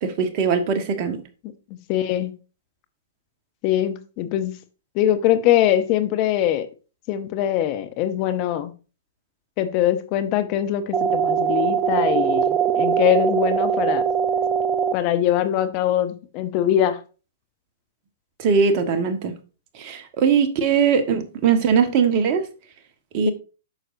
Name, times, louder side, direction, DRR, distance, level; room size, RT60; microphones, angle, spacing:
voice 1, 0.0-1.2 18.4-19.3 19.7-22.4 23.1-23.3, right 6 dB, 40° right, 1.5 m, -20 dB
voice 2, 1.9-2.3 3.6-4.5 4.9-6.7 7.1-8.7 9.6-14.0 14.9-17.0, left 11 dB, 40° left, 0.9 m, -22 dB
sound 1, 10.9-14.9, right 7 dB, 25° right, 0.7 m, -21 dB
9.0 x 6.4 x 2.7 m
hypercardioid pair, 115°, 0 cm